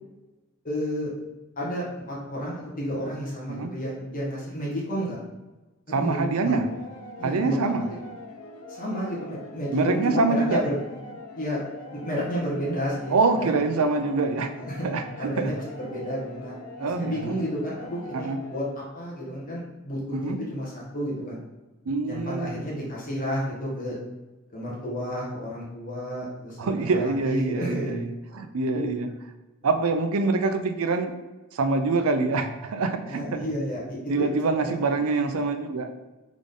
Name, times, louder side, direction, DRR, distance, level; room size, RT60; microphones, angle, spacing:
voice 1, 0.6-1.1 1.6-5.2 5.9-6.5 7.2-7.9 8.7-10.7 11.3-11.6 11.9-13.5 14.6-14.9 15.2-21.4 22.0-24.0 24.5-27.9 28.3-28.4 28.7-28.9 33.1-34.3 34.5-34.8, equal, 40° left, -5 dB, 1.2 m, -31 dB
voice 2, 5.9-6.6 7.2-7.8 9.7-10.6 13.1-14.5 14.8-15.5 16.8-17.4 18.1-18.4 20.1-20.4 21.9-22.6 26.6-29.1 29.6-31.1 31.5-33.5 34.1-35.9, right 3 dB, 75° right, 7 dB, 0.5 m, -25 dB
sound 1, 6.5-18.6, left 2 dB, 85° left, 0.6 m, -43 dB
3.8 x 3.6 x 3.6 m, 1.1 s
head